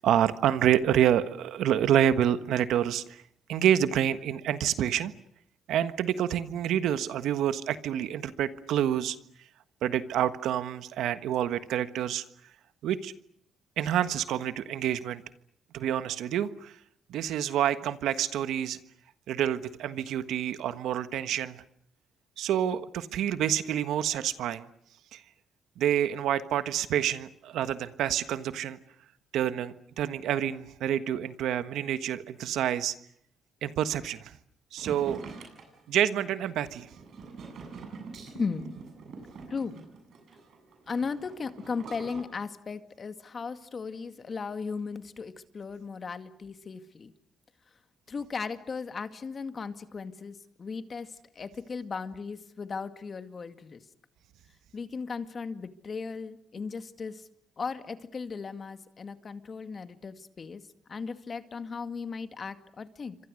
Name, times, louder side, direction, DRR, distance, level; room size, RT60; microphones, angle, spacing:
voice 1, 0.0-3.2 3.5-5.1 5.7-9.2 9.8-12.2 12.8-13.1 13.8-15.2 15.7-16.7 17.1-18.8 19.3-21.6 22.4-24.7 25.1-25.2 25.8-28.8 29.3-32.9 33.6-34.3 34.7-35.2 35.9-36.9, right 10 dB, 80° right, 12 dB, 1.4 m, -28 dB
sound 1, 34.8-42.2, right 4 dB, 65° right, 7.8 m, -45 dB
voice 2, 38.3-38.7 39.5-39.8 40.9-47.1 48.1-53.8 54.7-57.3 57.6-60.6 60.9-63.2, left 5 dB, 40° left, 9 dB, 2.1 m, -36 dB
28.5 x 25.0 x 6.5 m, 0.72 s
cardioid pair, 90°, 0 cm